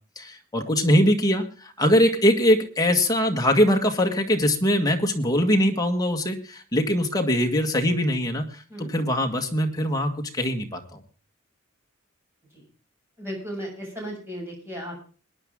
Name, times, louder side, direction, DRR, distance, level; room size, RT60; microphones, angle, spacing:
voice 1, 0.2-11.0, equal, 20° left, 3 dB, 1.8 m, -22 dB
voice 2, 13.2-15.0, equal, 10° right, -1 dB, 7.3 m, -35 dB
21.5 x 10.0 x 3.7 m, 0.38 s
head